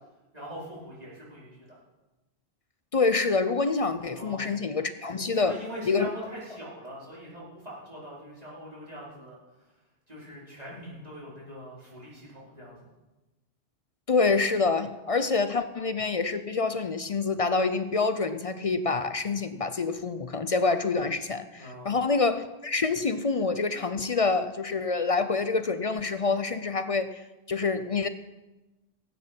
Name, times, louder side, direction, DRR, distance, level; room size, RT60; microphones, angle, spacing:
voice 1, 0.3-1.8 4.1-4.5 5.3-9.4 10.1-12.8 21.6-21.9, equal, 40° right, -7 dB, 4.8 m, -42 dB
voice 2, 2.9-5.6 5.9-6.1 14.1-28.1, left 4 dB, 40° left, 11 dB, 0.6 m, -27 dB
16.0 x 9.4 x 5.9 m, 1.1 s
omnidirectional pair, 1.1 m